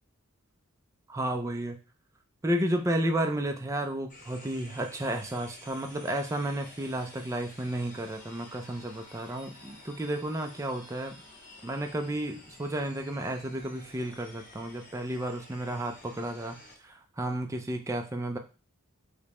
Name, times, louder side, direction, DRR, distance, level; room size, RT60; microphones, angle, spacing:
voice 1, 1.1-1.8 2.4-11.1 11.6-18.4, right 1 dB, 15° right, 5 dB, 0.3 m, -32 dB
sound 1, 4.1-16.8, left 2 dB, 35° left, 0.8 m, -51 dB
4.9 x 2.1 x 2.9 m, 0.33 s
head